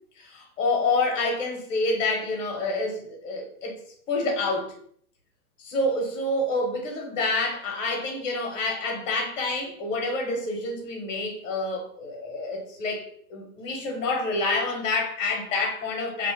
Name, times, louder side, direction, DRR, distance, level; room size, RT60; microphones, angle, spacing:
voice 1, 0.2-3.8 4.1-4.7 5.6-13.0 13.3-16.3, left 2 dB, 55° left, 0.9 m, -28 dB
2.4 x 2.1 x 2.8 m
hypercardioid pair, 155°, 46 cm